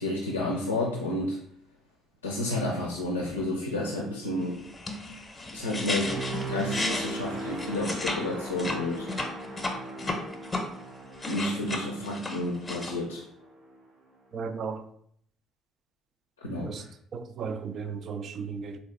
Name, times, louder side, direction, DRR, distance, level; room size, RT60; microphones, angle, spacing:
voice 1, 0.0-1.4 2.2-4.6 5.5-6.2 6.5-9.1 11.3-13.2 16.4-16.9, left 1 dB, 85° left, 0.5 m, -31 dB
sound 1, 4.6-8.2 8.5-10.6 11.0-12.9, left 2 dB, 25° left, 0.8 m, -33 dB
sound 2, 6.0-13.9 14.3-14.6, right 2 dB, 65° right, 1.1 m, -39 dB
voice 2, 14.3-14.8 16.6-18.8, right 5 dB, 50° right, 0.4 m, -35 dB
3.8 x 2.4 x 3.4 m
figure-of-eight pair, 50°, 0 cm